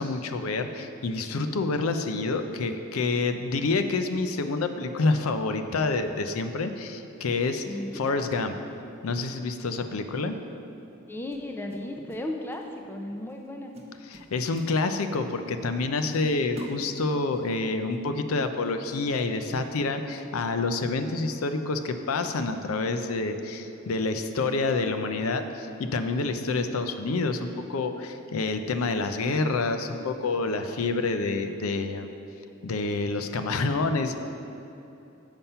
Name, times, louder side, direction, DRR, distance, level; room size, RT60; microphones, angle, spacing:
voice 1, 0.0-7.6 7.9-8.5 9.0-10.4 14.1-32.1 32.6-34.1, left 3 dB, 90° left, 8 dB, 0.5 m, -28 dB
voice 2, 7.6-8.0 11.1-13.7, left 1 dB, 10° left, 3 dB, 0.4 m, -35 dB
sound 1, 11.3-12.3 12.5-12.8 13.3-13.5 13.7-15.2 15.7-15.8 16.1-17.4, right 2 dB, 30° right, 0.8 m, -45 dB
7.1 x 5.6 x 5.5 m, 2.9 s
head